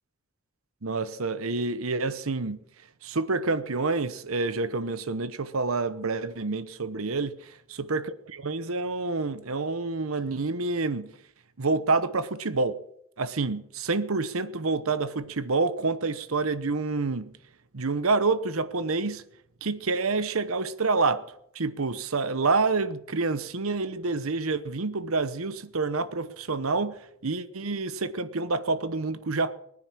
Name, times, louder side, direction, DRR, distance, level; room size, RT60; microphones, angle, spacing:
voice 1, 0.8-2.6 3.0-11.1 11.6-12.8 13.2-17.3 17.7-19.2 19.6-21.3 21.5-29.6, right 3 dB, 80° right, 1.0 m, -28 dB
20.0 x 9.7 x 7.4 m
head